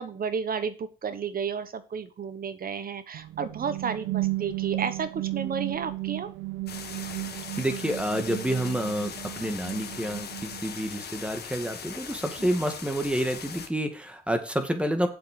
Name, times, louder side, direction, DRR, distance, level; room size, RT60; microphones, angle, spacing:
voice 1, 0.0-6.3 12.4-12.5, right 6 dB, 45° right, 12 dB, 1.1 m, -32 dB
sound 1, 3.1-10.9, right 19 dB, 85° right, 0.7 m, -34 dB
sound 2, 6.7-13.7, left 7 dB, 55° left, 1.7 m, -40 dB
voice 2, 7.6-15.1, right 1 dB, 5° right, 6 dB, 2.0 m, -29 dB
7.7 x 6.1 x 6.8 m, 0.34 s
cardioid pair, 90°, 20 cm